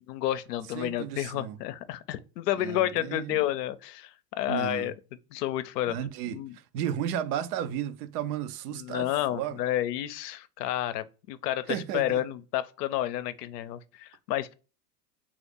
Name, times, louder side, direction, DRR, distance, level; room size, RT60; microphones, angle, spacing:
voice 1, 0.1-4.9 5.3-6.0 6.3-6.6 8.7-14.5, left 13 dB, 75° left, 0.6 m, -30 dB
voice 2, 0.7-1.6 2.6-3.4 4.5-4.9 5.9-9.6 11.7-12.2, right 10 dB, 70° right, 0.6 m, -34 dB
2.9 x 2.4 x 3.5 m
hypercardioid pair, 105°, 49 cm